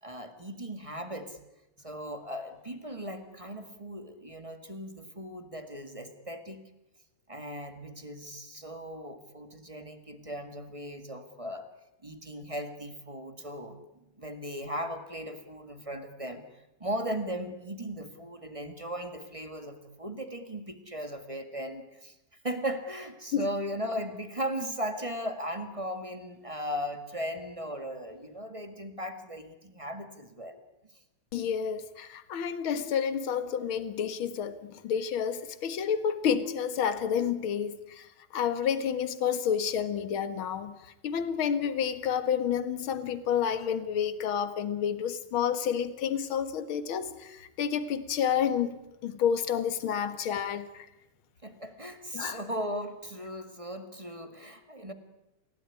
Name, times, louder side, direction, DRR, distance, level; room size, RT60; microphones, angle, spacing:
voice 1, 0.0-1.4 1.8-6.7 7.3-11.7 12.0-13.8 14.2-16.4 16.8-22.1 22.4-30.6 51.4-54.9, equal, 15° right, 8 dB, 1.5 m, -37 dB
voice 2, 31.3-50.9 52.1-52.4, left 8 dB, 50° left, 12 dB, 2.1 m, -30 dB
29.0 x 16.5 x 9.8 m, 0.94 s
omnidirectional pair, 3.3 m